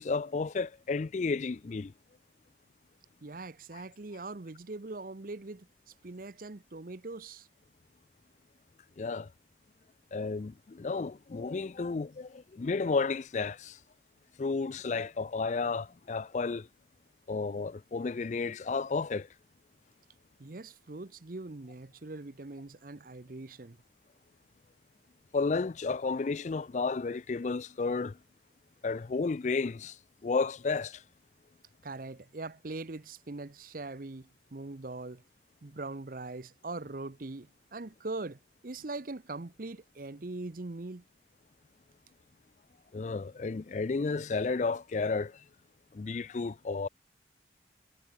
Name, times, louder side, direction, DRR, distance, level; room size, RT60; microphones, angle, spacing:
voice 1, 0.0-1.9 9.0-9.3 10.1-13.8 14.4-16.7 17.3-19.3 25.3-28.1 28.8-29.9 30.2-31.0 42.9-45.4 45.9-46.9, left 4 dB, 40° left, 0.4 m, -32 dB
voice 2, 3.2-5.7 6.0-7.5 20.4-23.8 31.8-35.2 35.6-41.0, right 2 dB, 50° right, 0.8 m, -41 dB
head